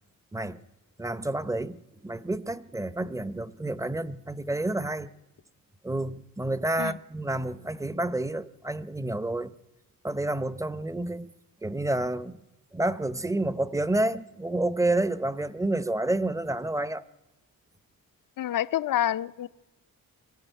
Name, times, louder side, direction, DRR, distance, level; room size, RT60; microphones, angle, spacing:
voice 1, 1.0-5.1 5.8-9.5 10.0-11.3 11.6-12.4 12.7-17.0, right 2 dB, 10° right, 0.7 m, -29 dB
voice 2, 18.4-19.5, left 12 dB, 70° left, 0.7 m, -27 dB
23.5 x 15.0 x 9.0 m
cardioid pair, 100°, 34 cm